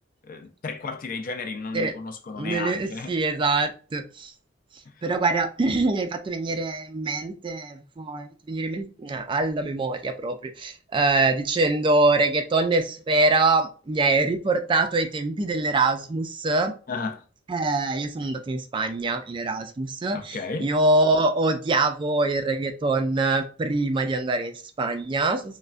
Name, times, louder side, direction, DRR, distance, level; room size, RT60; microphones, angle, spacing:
voice 1, 0.2-3.2 4.9-5.0 16.9-17.2 20.1-20.7, left 4 dB, 45° left, 0.4 m, -33 dB
voice 2, 2.4-4.3 5.0-16.7 17.5-25.6, right 2 dB, 25° right, 0.3 m, -24 dB
3.3 x 2.1 x 2.5 m
head